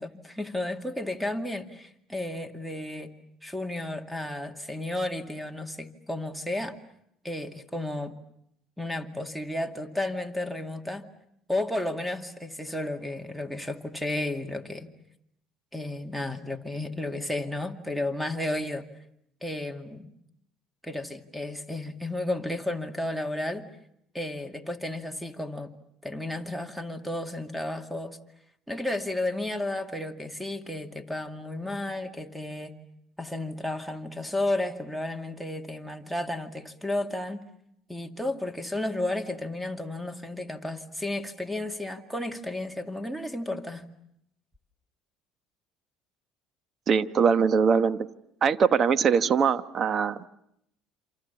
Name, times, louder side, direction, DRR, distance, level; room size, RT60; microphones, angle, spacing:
voice 1, 0.0-3.1 3.4-6.7 7.2-8.1 8.8-11.0 11.5-14.9 15.7-18.9 19.4-20.1 20.8-23.7 24.1-25.7 26.0-28.2 28.7-32.7 33.2-37.4 37.9-43.8, left 1 dB, ahead, 7 dB, 2.3 m, -33 dB
voice 2, 46.9-48.1 48.4-50.3, right 6 dB, 45° right, 13 dB, 1.1 m, -22 dB
28.0 x 27.0 x 7.1 m, 0.75 s
supercardioid pair, 95°, 0 cm